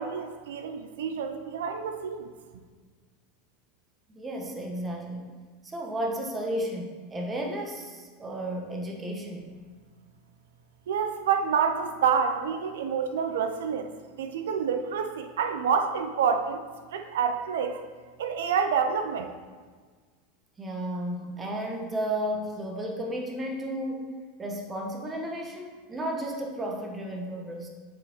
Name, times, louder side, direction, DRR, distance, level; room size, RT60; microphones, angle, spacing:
voice 1, 0.0-2.3 10.9-13.9 14.2-16.6 16.9-17.8 18.2-19.3, right 6 dB, 70° right, 6 dB, 0.5 m, -28 dB
voice 2, 4.1-5.3 5.6-9.5 20.6-24.1 24.4-27.7, right 1 dB, 20° right, 1 dB, 1.1 m, -33 dB
7.4 x 5.0 x 2.9 m, 1.5 s
figure-of-eight pair, 85°, 0 cm